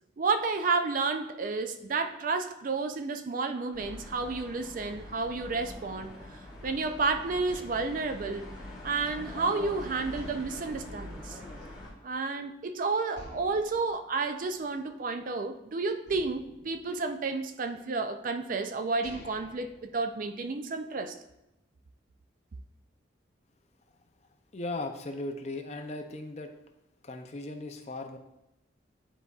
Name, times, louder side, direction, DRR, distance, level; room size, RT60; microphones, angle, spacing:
voice 1, 0.2-6.2 6.6-8.5 8.8-11.4 12.0-21.1, right 4 dB, 45° right, 8 dB, 0.4 m, -31 dB
sound 1, 3.7-11.9, left 1 dB, 5° right, 1.7 m, -44 dB
sound 2, 6.8-9.6 10.1-12.1 12.4-12.5 13.1-15.5 16.1-17.6 18.4-18.5 18.8-20.6, left 1 dB, 60° left, 0.9 m, -53 dB
voice 2, 24.5-26.5 27.0-28.2, left 2 dB, 35° left, 5 dB, 0.5 m, -37 dB
10.0 x 4.0 x 2.4 m, 0.89 s
head